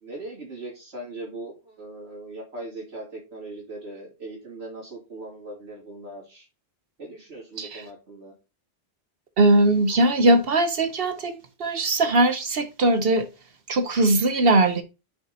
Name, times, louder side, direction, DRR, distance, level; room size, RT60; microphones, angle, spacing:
voice 1, 0.0-6.5 7.0-8.3, right 2 dB, 85° right, 3.3 m, -39 dB
voice 2, 9.4-13.3 13.7-14.8, right 2 dB, 65° right, 1.1 m, -20 dB
6.6 x 5.2 x 4.0 m
omnidirectional pair, 1.1 m